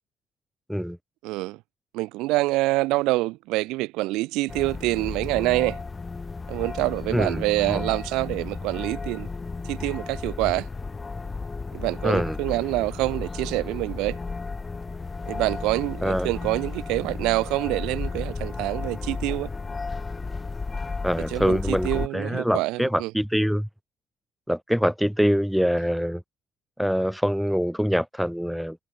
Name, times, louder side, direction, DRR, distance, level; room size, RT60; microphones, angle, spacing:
voice 1, 1.2-1.6 1.9-5.8 6.5-9.3 9.6-10.7 11.7-14.2 15.3-19.5 21.2-23.1, right 20 dB, 90° right, 2.7 m, -26 dB
sound 1, 4.5-22.1, left 4 dB, 30° left, 3.4 m, -33 dB
voice 2, 7.1-7.8 12.0-12.4 16.0-16.4 21.0-23.7 24.5-26.2 26.8-28.8, equal, ahead, 4.0 m, -24 dB
supercardioid pair, 70°, 0 cm